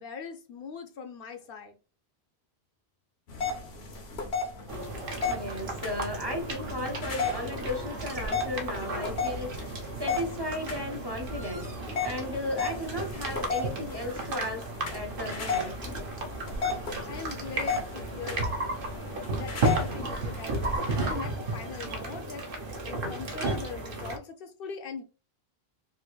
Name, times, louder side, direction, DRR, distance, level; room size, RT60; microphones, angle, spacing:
voice 1, 0.0-1.8 16.8-18.5 19.3-22.5 22.9-25.0, left 5 dB, 65° left, 0.7 m, -41 dB
sound 1, 3.3-20.8, left 4 dB, 90° left, 1.1 m, -35 dB
sound 2, 4.7-24.2, right 2 dB, 60° right, 0.9 m, -34 dB
voice 2, 5.1-9.7 10.0-11.7 12.0-15.8, left 1 dB, 30° right, 0.6 m, -35 dB
3.4 x 2.5 x 3.0 m
omnidirectional pair, 1.0 m